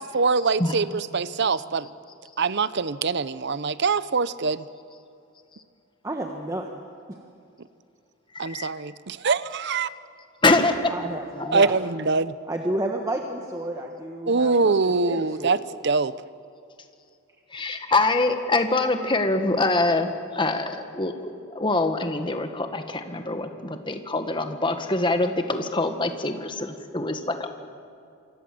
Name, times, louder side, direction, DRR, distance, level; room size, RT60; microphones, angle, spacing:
voice 1, 0.0-1.9 2.4-4.6 8.4-9.9 11.5-12.4 14.3-16.1, right 4 dB, 55° right, 16 dB, 0.7 m, -24 dB
voice 2, 6.0-6.8 7.1-7.3 10.9-11.8 12.5-14.7 15.0-15.5 17.8-17.9, right 1 dB, 15° right, 2 dB, 1.5 m, -31 dB
voice 3, 8.3-8.7 10.4-10.9 11.4-11.6 17.5-27.5, left 2 dB, 25° left, 6 dB, 1.7 m, -24 dB
28.0 x 25.0 x 7.8 m, 2.5 s
head